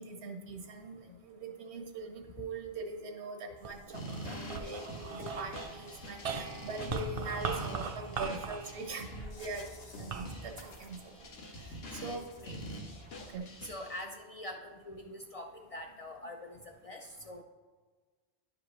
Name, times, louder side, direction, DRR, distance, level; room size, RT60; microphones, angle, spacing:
voice 1, 0.0-9.6 10.0-11.0 12.0-12.3 13.3-13.5, right 3 dB, 85° right, 3 dB, 1.2 m, -42 dB
sound 1, 3.6-12.0 12.6-13.4, right 4 dB, 50° right, 0.4 m, -41 dB
sound 2, 3.9-14.0, equal, 70° left, 1.2 m, -46 dB
voice 2, 10.0-10.3 12.0-12.1 12.4-12.6 13.6-17.4, left 2 dB, 50° left, 2 dB, 0.4 m, -44 dB
10.5 x 5.0 x 3.0 m, 1.4 s
omnidirectional pair, 1.1 m